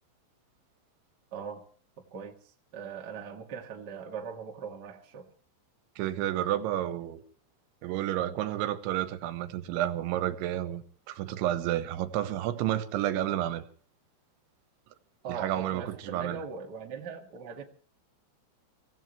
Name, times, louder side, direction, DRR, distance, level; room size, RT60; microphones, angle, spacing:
voice 1, 1.3-1.6 2.1-2.4 2.7-5.3 15.2-17.6, right 6 dB, 40° right, 1.4 m, -40 dB
voice 2, 6.0-7.2 7.8-13.6 15.3-16.4, right 12 dB, 90° right, 3.3 m, -31 dB
25.0 x 16.5 x 3.1 m
omnidirectional pair, 5.3 m